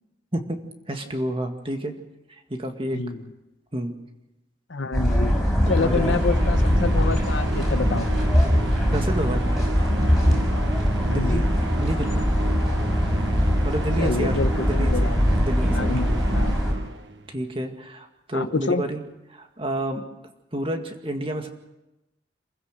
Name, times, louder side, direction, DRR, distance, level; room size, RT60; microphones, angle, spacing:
voice 1, 0.9-1.9 2.3-3.0 3.7-3.9 5.8-6.2 8.9-9.5 11.1-11.5 11.8-12.2 13.6-14.4 14.6-15.9 17.3-19.0 19.3-20.0 20.5-21.5, right 1 dB, 30° right, 5 dB, 2.0 m, -29 dB
voice 2, 4.7-5.4 5.7-8.1 11.1-11.4 14.0-15.2 15.7-16.6 18.3-18.8, left 3 dB, 85° left, 11 dB, 1.0 m, -27 dB
sound 1, 4.9-16.7, equal, ahead, 6.0 m, -22 dB
sound 2, 5.6-17.4, right 2 dB, 75° right, 1.3 m, -32 dB
27.5 x 15.5 x 6.7 m, 0.98 s
head